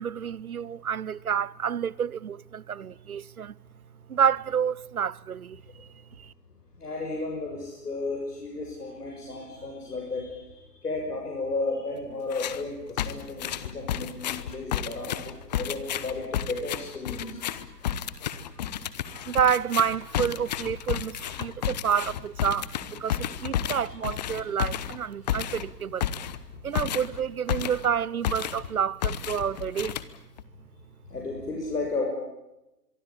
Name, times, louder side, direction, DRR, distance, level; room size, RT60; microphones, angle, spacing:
voice 1, 0.0-3.5 4.1-5.6 6.2-6.3 19.1-26.1 26.6-30.0, right 8 dB, 60° right, 0.9 m, -29 dB
voice 2, 6.8-17.6 23.2-23.3 23.7-23.8 24.4-24.5 31.1-32.1, left 3 dB, 65° left, 6.6 m, -34 dB
sound 1, 12.3-12.6 13.0-28.0 28.2-28.7 29.0-30.4, left 10 dB, 25° left, 1.1 m, -32 dB
24.5 x 24.0 x 8.6 m
figure-of-eight pair, 130°, 49 cm